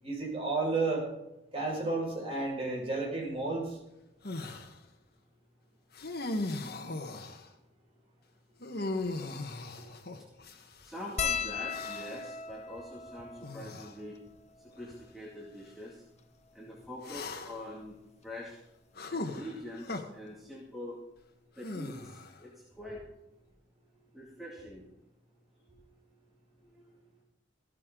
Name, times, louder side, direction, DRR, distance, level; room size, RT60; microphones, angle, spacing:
voice 1, 0.0-1.1 1.5-3.8, right 3 dB, 30° right, -2 dB, 5.4 m, -32 dB
sound 1, 4.2-4.7 5.9-7.5 8.6-10.9 11.7-12.3 13.4-13.9 14.8-14.9 17.0-17.7 19.0-20.0 21.6-22.4, left 2 dB, 60° left, 1.4 m, -38 dB
voice 2, 10.8-14.2 14.6-16.0 16.5-18.0 18.2-18.6 19.1-21.0 21.6-23.0 24.1-24.8 26.6-27.0, left 1 dB, ahead, -4 dB, 2.3 m, -44 dB
sound 2, 11.2-15.8 16.5-16.6 16.8-17.0 18.3-18.5 20.0-20.1 20.3-20.5, left 6 dB, 35° left, 0.8 m, -38 dB
15.0 x 13.0 x 3.8 m, 0.90 s
head